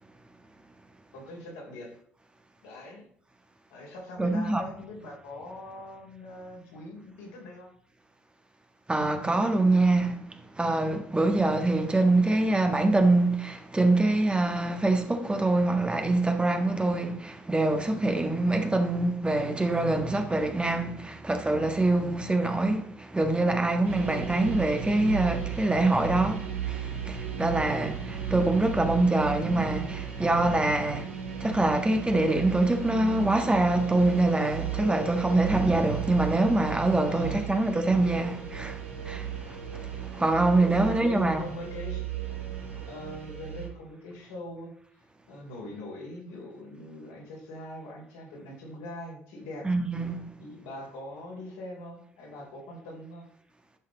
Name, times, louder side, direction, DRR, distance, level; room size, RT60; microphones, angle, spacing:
voice 1, 1.1-1.9 2.6-3.0 3.7-7.7 21.9-22.2 37.1-37.7 40.6-42.0 42.9-44.7 45.3-49.7 50.4-53.3, left 1 dB, 70° left, 3.3 m, -42 dB
voice 2, 4.2-4.6 8.9-10.2 10.6-41.4 49.6-50.2, right 2 dB, 15° right, 1.5 m, -25 dB
sound 1, 23.8-43.7, right 8 dB, 80° right, 1.3 m, -36 dB
11.0 x 6.4 x 4.0 m
figure-of-eight pair, 50°, 7 cm